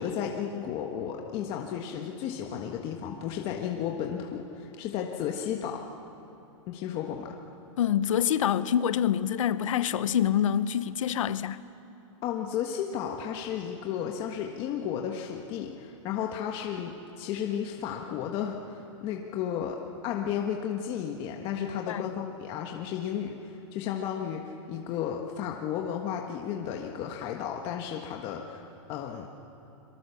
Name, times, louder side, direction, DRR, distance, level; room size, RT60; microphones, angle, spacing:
voice 1, 0.0-5.8 6.7-7.4 12.2-19.8 20.0-29.3, left 8 dB, 35° left, 1.5 m, -33 dB
voice 2, 7.8-11.6 21.7-22.0, left 9 dB, 80° left, 1.0 m, -26 dB
26.0 x 23.5 x 7.1 m
supercardioid pair, 155°, 17 cm